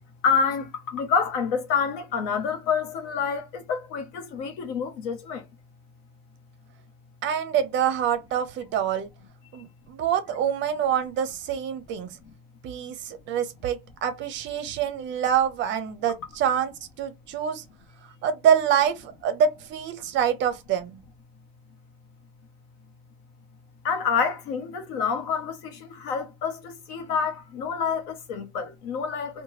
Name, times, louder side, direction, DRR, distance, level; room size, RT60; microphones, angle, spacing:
voice 1, 0.2-5.4 23.8-29.4, left 6 dB, 80° left, 0.9 m, -28 dB
voice 2, 7.2-9.1 9.5-12.2 12.6-16.7 17.0-17.6 18.2-21.0, right 8 dB, 40° right, 0.5 m, -26 dB
2.8 x 2.2 x 3.0 m
cardioid pair, 165°, 31 cm